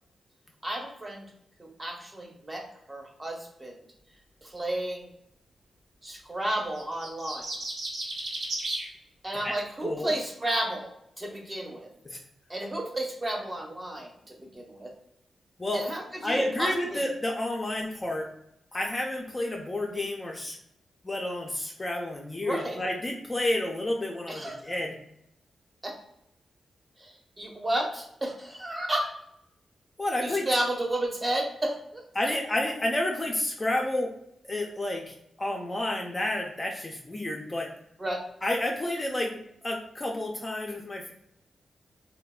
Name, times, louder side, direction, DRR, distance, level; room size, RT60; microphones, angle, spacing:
voice 1, 0.6-1.2 1.6-2.6 2.9-3.8 4.4-5.1 6.0-7.5 9.2-10.9 11.2-11.9 12.5-14.9 15.7-17.0 22.4-22.8 24.3-24.8 25.8-25.9 27.0-29.1 30.2-32.0 38.0-38.2, right 1 dB, 20° right, 0 dB, 0.7 m, -32 dB
sound 1, 6.8-8.9, right 2 dB, 90° right, 0.7 m, -34 dB
voice 2, 9.8-10.1 12.1-12.2 15.6-15.8 16.2-18.3 18.7-20.6 21.0-25.0 30.0-30.6 32.1-34.1 34.5-37.7 38.4-41.1, left 1 dB, 25° left, 1 dB, 0.4 m, -30 dB
3.1 x 2.1 x 2.2 m, 0.77 s
cardioid pair, 95°, 0 cm